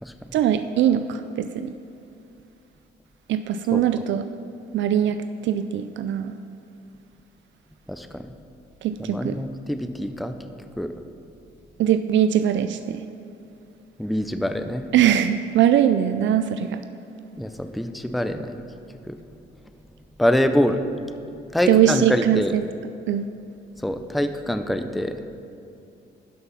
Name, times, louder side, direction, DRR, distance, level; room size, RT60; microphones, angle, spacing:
voice 1, 0.3-1.7 3.3-4.2 4.7-6.4 8.8-9.4 11.8-13.0 14.9-16.8 21.7-22.6 23.1-23.3, right 10 dB, 70° right, 11 dB, 0.4 m, -21 dB
voice 2, 7.9-8.3 9.1-10.3 10.8-10.9 14.0-14.8 17.4-18.6 19.1-19.2 20.2-20.8 21.5-22.5 23.8-25.2, left 1 dB, ahead, 8 dB, 0.5 m, -24 dB
11.0 x 6.0 x 5.7 m, 2.7 s
cardioid pair, 90°, 20 cm